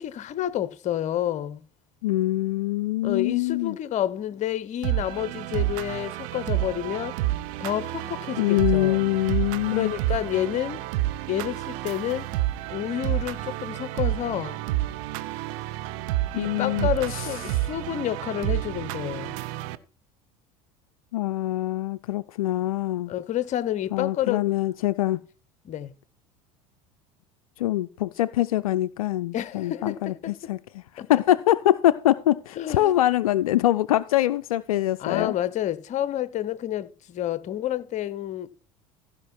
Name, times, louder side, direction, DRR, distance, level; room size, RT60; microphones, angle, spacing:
voice 1, 0.0-1.6 3.0-7.2 7.6-9.0 9.7-10.8 11.3-12.3 12.7-14.6 16.3-19.3 23.1-24.4 25.6-25.9 29.3-30.3 31.0-31.1 32.6-32.9 35.0-38.5, left 12 dB, 40° left, 0.8 m, -29 dB
voice 2, 2.0-3.8 8.4-9.9 16.3-17.3 17.5-17.7 21.1-23.1 23.9-25.2 27.6-30.1 30.5-35.3, left 14 dB, 70° left, 0.4 m, -24 dB
sound 1, 4.8-19.8, right 16 dB, 60° right, 0.8 m, -29 dB
15.0 x 5.8 x 4.5 m
figure-of-eight pair, 70°, 19 cm